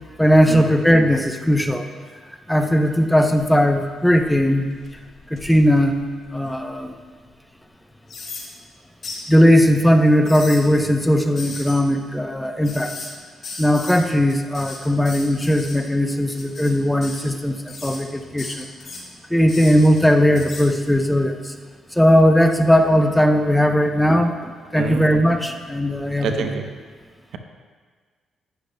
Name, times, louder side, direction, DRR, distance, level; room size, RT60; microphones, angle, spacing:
voice 1, 0.2-1.8 2.5-4.7 5.3-6.0 6.3-6.9 9.3-12.9 13.6-18.6 19.3-21.4 22.0-24.3 24.7-26.6, equal, 5° left, 5 dB, 0.7 m, -18 dB
sound 1, 4.1-6.8 7.3-7.4 8.1-8.5 9.0-9.2 10.1-10.6 11.4-11.8 12.6-13.1 13.4-14.0 14.3-15.8 16.3-16.7 17.0-17.3 17.7-18.0 18.4-19.0 19.5-20.0 20.4-20.7, left 3 dB, 50° left, 2.9 m, -36 dB
voice 2, 24.7-25.0 26.2-26.6, right 5 dB, 75° right, 5 dB, 0.8 m, -26 dB
11.5 x 10.0 x 2.2 m, 1.5 s
cardioid pair, 90°, 0 cm